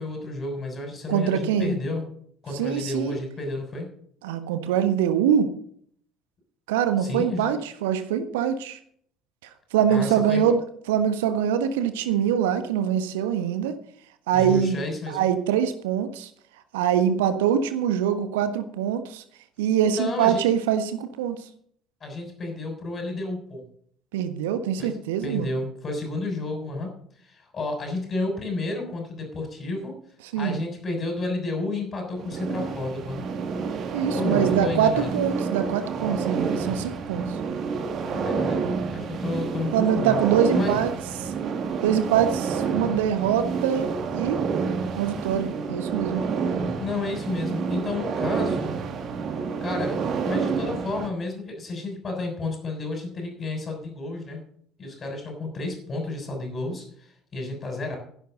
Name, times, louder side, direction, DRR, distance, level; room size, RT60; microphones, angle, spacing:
voice 1, 0.0-2.0 2.4-3.9 7.0-7.5 9.9-10.4 14.3-15.3 19.9-20.4 22.0-23.6 24.8-25.0 25.2-26.9 27.2-30.0 30.3-33.2 34.1-35.2 38.1-40.2 40.5-40.8 46.8-48.8 49.6-54.4 54.8-58.0, left 2 dB, 35° left, 0 dB, 6.4 m, -31 dB
voice 2, 1.1-1.7 2.5-3.2 4.2-5.5 6.7-8.8 9.7-10.6 10.9-13.7 14.3-14.8 15.1-16.3 16.7-19.2 19.6-21.5 24.1-25.5 30.3-30.6 33.9-37.4 39.7-40.9 41.2-41.3 41.8-44.4 45.0-46.2, right 9 dB, 70° right, 9 dB, 1.4 m, -24 dB
sound 1, 32.2-51.1, right 5 dB, 50° right, 2.0 m, -28 dB
16.5 x 10.5 x 4.0 m, 0.63 s
figure-of-eight pair, 55°, 0 cm